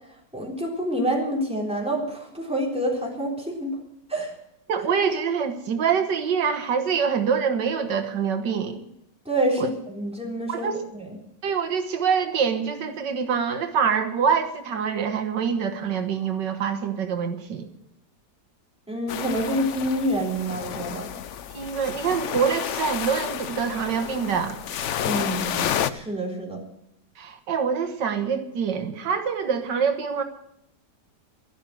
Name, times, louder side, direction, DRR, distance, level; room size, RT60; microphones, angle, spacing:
voice 1, 0.3-3.8 4.1-4.3 9.3-11.2 18.9-21.1 25.0-26.6, right 1 dB, 5° right, -2 dB, 3.8 m, -27 dB
voice 2, 4.7-8.8 9.6-9.7 10.5-10.8 11.4-17.7 21.5-24.6 27.2-30.2, right 6 dB, 90° right, 7 dB, 1.9 m, -25 dB
sound 1, 19.1-25.9, left 9 dB, 60° left, 0.8 m, -31 dB
12.5 x 12.0 x 7.7 m, 0.80 s
omnidirectional pair, 1.8 m